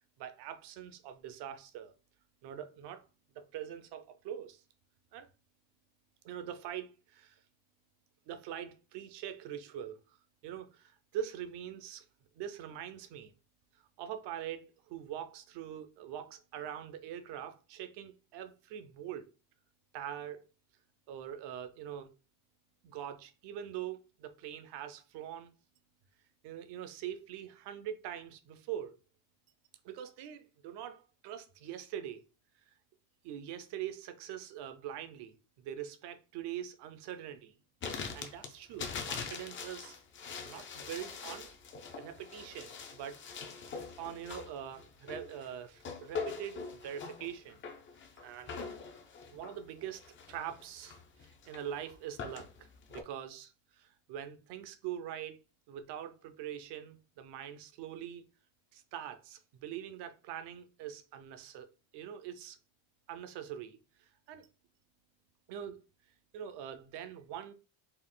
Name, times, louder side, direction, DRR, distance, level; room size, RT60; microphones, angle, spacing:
voice 1, 0.2-1.9 2.4-3.0 3.3-4.6 5.1-5.3 6.2-7.4 8.3-10.2 10.4-12.0 12.4-13.3 14.0-19.3 19.9-20.4 21.1-22.1 22.8-25.5 26.4-29.0 29.8-32.2 33.2-35.3 35.6-37.5 38.1-39.9 40.4-41.5 42.0-43.2 43.6-47.6 48.2-48.6 49.3-50.0 50.3-55.4 55.7-58.2 58.7-61.7 61.9-62.6 63.1-63.8 64.3-64.5 65.5-65.8 66.3-67.5, right 10 dB, 60° right, 0.8 m, -43 dB
sound 1, 37.8-53.0, left 5 dB, 25° left, 0.5 m, -43 dB
4.3 x 2.4 x 3.7 m
cardioid pair, 160°, 46 cm